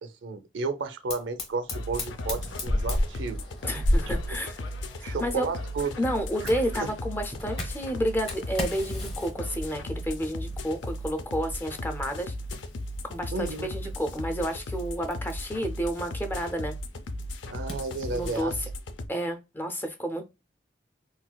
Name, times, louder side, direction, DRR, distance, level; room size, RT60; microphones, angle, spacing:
voice 1, 0.0-3.4 4.0-4.1 5.0-6.0 6.4-6.9 13.3-13.7 17.5-18.6, right 4 dB, 85° right, 0.5 m, -33 dB
Fire, 1.1-18.4, left 1 dB, 30° left, 0.9 m, -36 dB
sound 1, 1.7-19.1, left 1 dB, 80° left, 0.4 m, -36 dB
voice 2, 3.6-4.6 5.0-5.5 6.0-12.3 13.0-16.7 18.1-18.5 19.1-20.2, equal, 10° left, 0.4 m, -30 dB
4.0 x 2.3 x 2.2 m
head